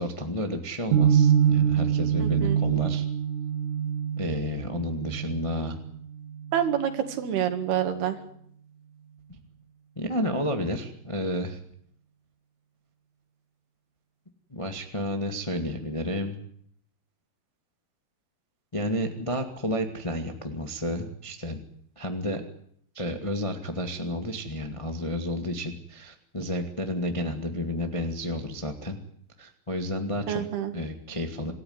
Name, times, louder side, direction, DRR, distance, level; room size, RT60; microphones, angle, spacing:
voice 1, 0.0-3.0 4.2-5.7 9.3-9.4 9.9-11.6 14.5-16.4 18.7-21.6 21.9-22.4 22.9-29.0 29.4-30.4 30.7-31.5, left 1 dB, 30° left, 5 dB, 0.6 m, -31 dB
sound 1, 0.9-7.0, right 8 dB, 60° right, 2.5 m, -25 dB
voice 2, 2.2-2.6 6.5-8.2 30.3-30.7, right 10 dB, 90° right, 8 dB, 4.1 m, -27 dB
26.5 x 14.5 x 9.6 m, 0.67 s
omnidirectional pair, 4.4 m